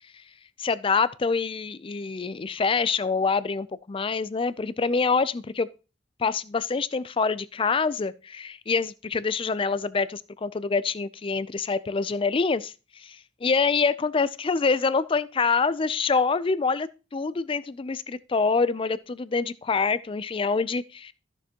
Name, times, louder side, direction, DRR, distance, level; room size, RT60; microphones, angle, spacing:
voice 1, 0.6-5.7 6.2-21.1, left 4 dB, 30° left, 0.4 m, -26 dB
13.0 x 6.8 x 2.9 m
head